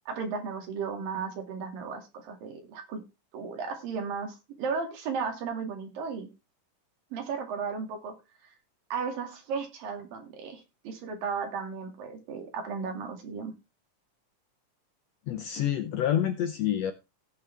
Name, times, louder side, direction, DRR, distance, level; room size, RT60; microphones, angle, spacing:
voice 1, 0.1-3.0 3.3-6.3 7.1-8.2 8.9-13.5, right 5 dB, 85° right, 5 dB, 4.2 m, -35 dB
voice 2, 15.3-16.9, left 10 dB, 75° left, 10 dB, 1.6 m, -28 dB
16.5 x 6.9 x 3.4 m, 0.25 s
omnidirectional pair, 3.9 m